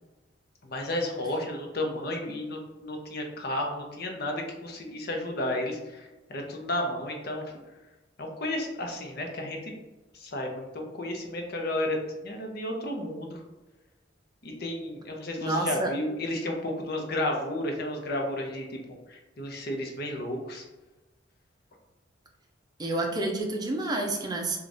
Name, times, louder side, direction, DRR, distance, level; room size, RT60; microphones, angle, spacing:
voice 1, 0.6-7.4 8.2-9.7 10.1-13.4 14.4-18.8 19.1-20.6, left 1 dB, 55° left, 2 dB, 0.7 m, -32 dB
voice 2, 15.4-15.9 22.8-24.6, right 2 dB, 20° right, 1 dB, 0.6 m, -29 dB
5.0 x 2.4 x 2.6 m, 1.1 s
head